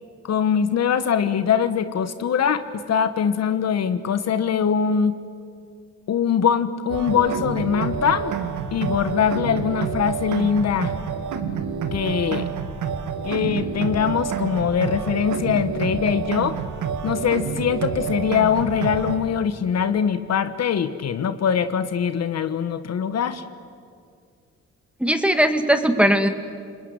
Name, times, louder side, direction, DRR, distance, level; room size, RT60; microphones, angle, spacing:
voice 1, 0.2-2.6 2.9-5.2 6.1-8.3 8.7-10.9 11.9-12.5 13.2-16.6 17.0-23.4, left 7 dB, 60° left, 11 dB, 1.3 m, -22 dB
sound 1, 6.9-19.2, right 7 dB, 80° right, 2.1 m, -28 dB
voice 2, 25.0-26.3, equal, 5° right, 7 dB, 2.2 m, -19 dB
29.0 x 20.5 x 9.9 m, 2.3 s
cardioid pair, 90°, 30 cm